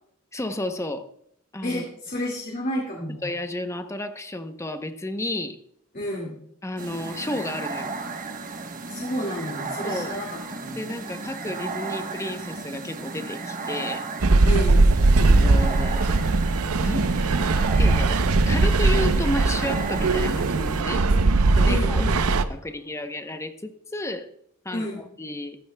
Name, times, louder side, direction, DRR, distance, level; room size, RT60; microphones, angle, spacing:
voice 1, 0.3-1.1 1.5-1.8 3.2-5.6 6.6-7.9 9.8-10.2 10.8-14.1 15.2-16.1 16.8-18.2 18.5-21.1 21.6-22.1 22.5-24.3 24.6-24.9 25.2-25.6, left 1 dB, 15° left, 8 dB, 0.7 m, -32 dB
voice 2, 1.6-3.2 5.9-6.4 8.9-10.8 14.4-14.9 21.6-22.3 24.7-25.0, left 1 dB, 40° left, -2 dB, 2.0 m, -31 dB
sound 1, 6.8-20.8, right 4 dB, 40° right, 1.1 m, -34 dB
sound 2, 14.2-22.4, right 3 dB, 80° right, 0.7 m, -20 dB
14.5 x 12.5 x 2.2 m, 0.69 s
head